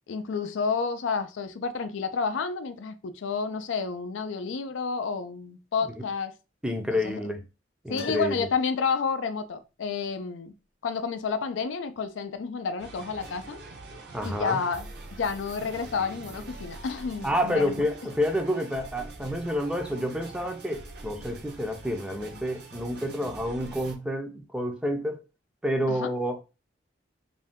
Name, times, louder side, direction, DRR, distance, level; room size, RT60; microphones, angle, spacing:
voice 1, 0.1-6.3 7.0-7.2 7.9-10.5 10.8-13.6 14.2-14.9 15.2-17.9 25.9-26.1, left 5 dB, 85° left, 0.4 m, -30 dB
voice 2, 6.6-7.4 7.8-8.5 14.1-14.6 17.2-25.2 25.6-26.4, equal, 5° right, 0.4 m, -29 dB
Piano, 8.0-8.8, left 5 dB, 50° left, 0.7 m, -44 dB
sound 1, 12.8-23.9, right 2 dB, 60° right, 0.5 m, -44 dB
2.6 x 2.2 x 3.4 m
head